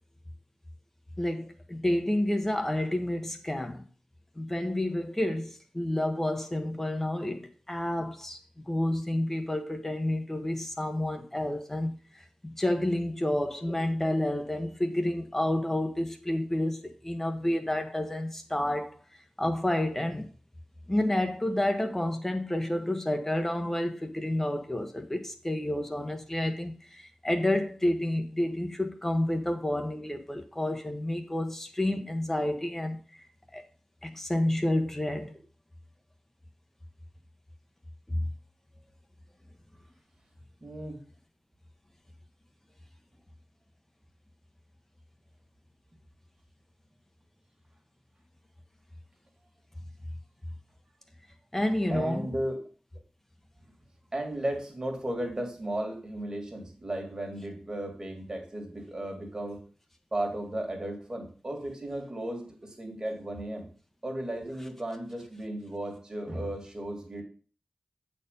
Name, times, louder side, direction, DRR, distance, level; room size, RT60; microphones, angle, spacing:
voice 1, 1.2-3.8 4.4-8.4 8.7-19.0 19.4-20.3 20.9-33.3 33.5-33.6 34.0-35.3 38.1-38.2 51.5-52.3, left 1 dB, 15° left, 0.9 m, -30 dB
voice 2, 40.6-41.0 51.9-52.6 54.1-59.6 60.1-63.7 64.0-67.2, right 1 dB, 30° right, 2.0 m, -35 dB
8.2 x 4.4 x 5.2 m
wide cardioid pair, 105°, 2 cm